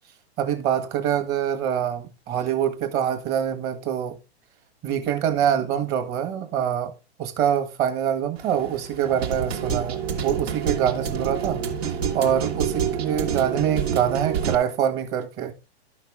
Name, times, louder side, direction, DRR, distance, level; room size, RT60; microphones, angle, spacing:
voice 1, 0.4-4.2 4.8-6.9 7.2-11.6 12.1-15.5, right 9 dB, 30° right, 1.6 m, -25 dB
sound 1, 8.4-14.5, right 7 dB, 70° right, 1.8 m, -28 dB
12.0 x 5.9 x 3.5 m
hypercardioid pair, 130°, 33 cm